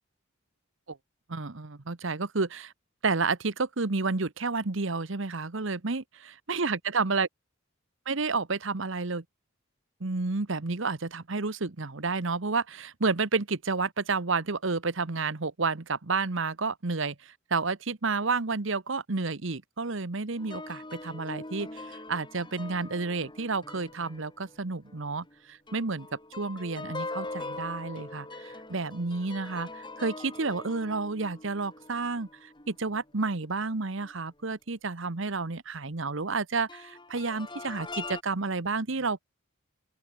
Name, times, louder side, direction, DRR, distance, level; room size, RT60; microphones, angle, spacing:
voice 1, 1.3-2.7 3.0-7.3 8.1-9.2 10.0-26.1 26.4-39.2, right 4 dB, 60° right, 1.1 m, -30 dB
sound 1, 20.4-25.4 25.7-33.4 34.0-34.1 36.7-38.2, left 2 dB, 20° left, 6.7 m, -42 dB
open air
head